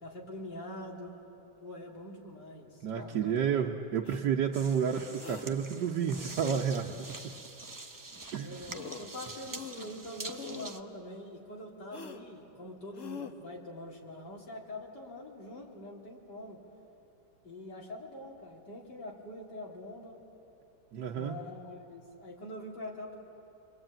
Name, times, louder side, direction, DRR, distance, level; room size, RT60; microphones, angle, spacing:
voice 1, 0.0-1.2 1.6-3.4 8.4-16.6 17.4-20.2 21.1-23.2, left 1 dB, 65° left, -2 dB, 3.9 m, -44 dB
voice 2, 2.8-7.3 8.3-8.6 20.9-21.3, right 7 dB, 70° right, 1 dB, 1.4 m, -31 dB
sound 1, 4.1-4.2 5.2-5.5 6.1-6.7 8.3-8.4 8.7-9.2 9.5-10.0 10.3-10.8 11.9-12.2 12.9-13.3, left 6 dB, 50° left, 1.3 m, -44 dB
sound 2, 4.5-10.8, right 2 dB, 35° right, 0.3 m, -45 dB
29.5 x 23.0 x 8.9 m, 2.9 s
omnidirectional pair, 2.0 m